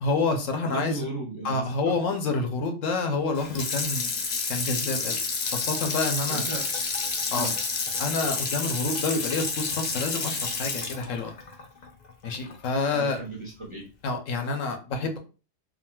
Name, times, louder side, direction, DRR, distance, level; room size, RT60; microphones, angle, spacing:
voice 1, 0.0-1.0 1.4-4.1 4.5-5.2 5.5-6.4 7.3-7.5 8.0-11.3 12.2-13.2 14.0-15.2, left 3 dB, 80° left, 5 dB, 1.1 m, -28 dB
voice 2, 0.6-1.9 6.3-6.7 7.3-7.6 8.7-8.8 12.9-13.9, right 2 dB, 35° right, -3 dB, 0.6 m, -35 dB
Water tap faucet / Sink (filling or washing), 3.3-12.6 13.0-13.1, left 4 dB, 50° left, 0.5 m, -30 dB
3.8 x 2.3 x 2.2 m, 0.34 s
omnidirectional pair, 1.3 m